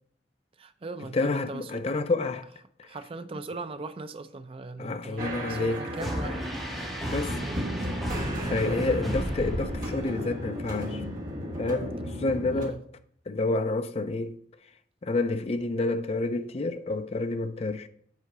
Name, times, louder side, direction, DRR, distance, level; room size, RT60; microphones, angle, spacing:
voice 1, 0.6-2.0 2.8-7.1 7.4-7.7 8.4-9.0 12.5-12.8, right 3 dB, 30° right, 0.4 m, -40 dB
voice 2, 1.1-2.5 2.8-2.9 4.8-6.3 7.1-7.4 8.3-11.0 11.6-12.8 13.3-14.4 15.0-17.9, left 2 dB, 35° left, 0.4 m, -29 dB
sound 1, 5.2-12.7, equal, 50° right, 1.4 m, -35 dB
sound 2, 6.0-10.3, equal, ahead, 2.0 m, -33 dB
8.2 x 3.8 x 4.7 m
head